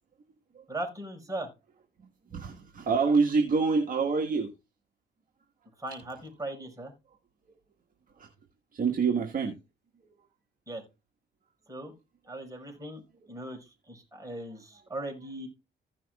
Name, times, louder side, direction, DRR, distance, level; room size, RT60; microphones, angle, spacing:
voice 1, 0.7-1.5 5.8-6.9 10.7-10.8 11.7-11.9 12.3-13.0 13.3-15.5, right 1 dB, 15° right, 5.1 m, -38 dB
voice 2, 2.3-4.5 8.2-8.3 8.7-9.6, right 4 dB, 45° right, 1.6 m, -26 dB
16.0 x 6.1 x 2.4 m
cardioid pair, 90°, 20 cm